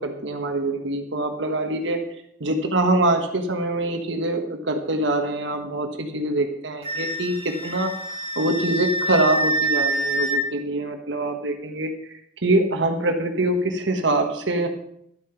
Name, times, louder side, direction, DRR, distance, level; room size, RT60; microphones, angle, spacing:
voice 1, 0.0-2.0 2.4-7.9 8.4-14.7, right 2 dB, 80° right, 4 dB, 1.3 m, -24 dB
Wind instrument woodwind instrument, 6.8-10.4, right 1 dB, 35° right, 3.1 m, -26 dB
11.5 x 8.7 x 5.8 m, 0.71 s
head